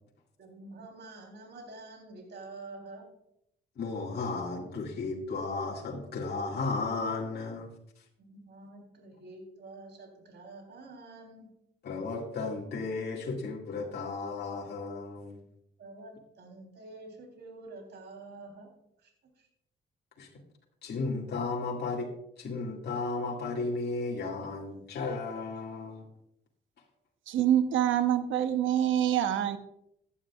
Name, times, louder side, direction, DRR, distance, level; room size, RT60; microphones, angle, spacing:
voice 1, 0.4-3.1 8.3-11.5 15.8-18.7 19.0-19.1 19.4-19.5, right 2 dB, 60° right, 2 dB, 3.5 m, -47 dB
voice 2, 3.8-7.7 11.8-15.4 20.2-20.3 20.8-22.1 22.4-26.1, left 3 dB, 55° left, -2 dB, 2.2 m, -34 dB
voice 3, 27.3-29.6, right 10 dB, 75° right, 10 dB, 0.9 m, -26 dB
15.5 x 10.5 x 2.4 m, 0.77 s
cardioid pair, 90°, 20 cm